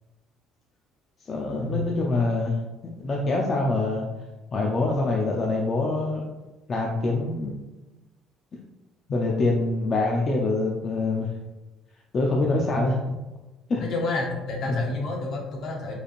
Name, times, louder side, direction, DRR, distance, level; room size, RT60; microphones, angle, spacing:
voice 1, 1.2-2.6 3.0-4.1 4.5-6.2 6.7-7.6 9.1-11.3 12.1-13.0 13.7-13.8 14.7-14.8, left 2 dB, 25° left, -1 dB, 0.4 m, -25 dB
voice 2, 13.8-16.0, left 2 dB, 45° left, 0 dB, 0.8 m, -29 dB
5.0 x 3.2 x 2.4 m, 1.1 s
cardioid pair, 175°, 0 cm